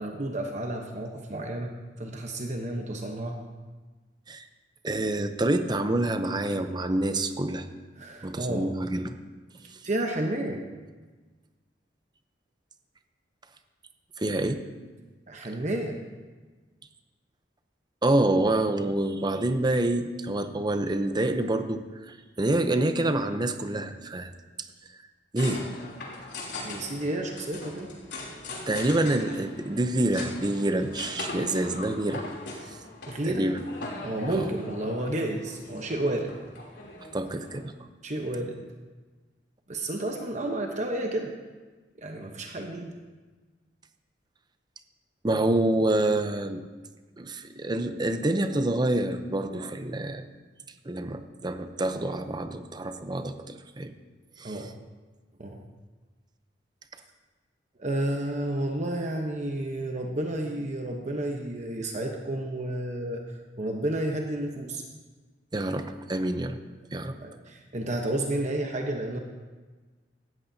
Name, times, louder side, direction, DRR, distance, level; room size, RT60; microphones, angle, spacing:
voice 1, 0.0-1.7 2.0-3.4 8.0-8.7 9.8-10.6 15.3-16.0 26.6-27.9 33.1-33.5 34.0-36.3 38.0-38.6 39.7-41.3 42.0-42.9 54.4-54.7 55.4-55.6 57.8-64.8 67.2-69.2, right 1 dB, 45° right, 2 dB, 1.0 m, -31 dB
voice 2, 4.8-7.7 8.2-9.2 14.2-14.6 18.0-24.3 25.3-25.7 28.7-32.2 33.3-33.6 34.3-34.5 37.1-37.7 45.2-46.6 47.2-50.3 50.9-53.9 54.4-54.6 65.5-66.6 66.9-67.2, right 1 dB, 25° right, 8 dB, 0.7 m, -27 dB
sound 1, 25.4-37.6, left 2 dB, 90° left, 3.2 m, -40 dB
17.0 x 13.5 x 2.8 m, 1.3 s
head